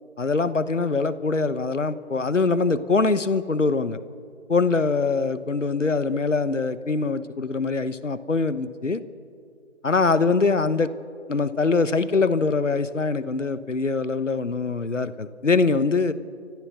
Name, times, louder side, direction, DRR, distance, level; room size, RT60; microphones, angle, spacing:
voice 1, 0.2-4.0 4.5-9.0 9.8-10.9 11.3-16.1, left 4 dB, 80° left, 14 dB, 1.2 m, -23 dB
28.5 x 14.5 x 6.6 m, 2.3 s
figure-of-eight pair, 170°, 36 cm